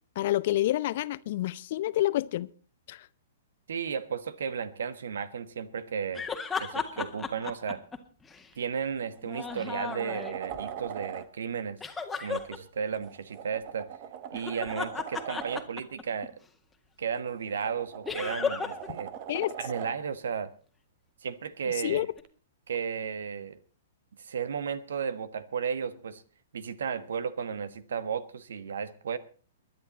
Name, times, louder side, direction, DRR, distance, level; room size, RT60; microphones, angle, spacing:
voice 1, 0.2-2.5 2.9-3.0 19.3-19.5 21.8-22.1, left 14 dB, 50° left, 0.7 m, -28 dB
voice 2, 3.7-6.3 6.6-7.8 8.6-11.8 12.2-13.9 14.3-16.4 17.0-19.1 19.6-20.5 21.2-22.1 22.7-23.6 24.2-26.2 26.5-29.2, right 7 dB, 65° right, 1.4 m, -34 dB
sound 1, 6.1-8.5 9.2-10.6 11.8-12.6 14.3-16.3 18.0-18.9 19.2-19.3 22.2-22.3, left 5 dB, 10° left, 1.9 m, -35 dB
sound 2, 8.4-8.5 9.0-11.3 12.9-15.7 17.1-20.0 22.2-22.3, right 9 dB, 40° right, 1.5 m, -41 dB
21.5 x 11.0 x 4.2 m
figure-of-eight pair, 110°, 0 cm